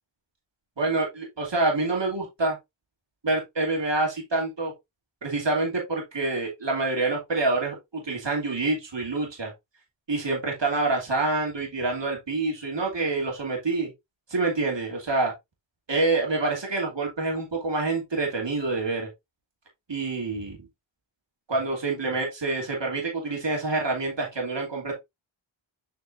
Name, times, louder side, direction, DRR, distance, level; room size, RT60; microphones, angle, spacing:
voice 1, 0.8-2.6 3.2-4.7 5.2-9.5 10.1-13.9 14.3-15.3 15.9-19.1 19.9-20.6 21.5-24.9, right 3 dB, 60° right, 2.7 m, -27 dB
7.6 x 5.1 x 2.6 m
wide cardioid pair, 65°, 49 cm